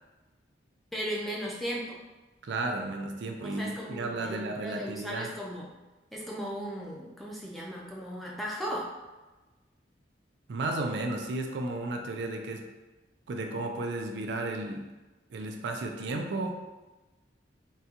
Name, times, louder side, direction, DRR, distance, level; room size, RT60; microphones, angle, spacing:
voice 1, 0.9-2.0 3.4-5.7 6.1-8.9, equal, ahead, -4 dB, 0.4 m, -36 dB
voice 2, 2.4-5.3 10.5-12.7 13.3-14.9 15.3-16.6, right 2 dB, 70° right, 3 dB, 0.4 m, -33 dB
3.7 x 2.2 x 2.8 m, 1.1 s
head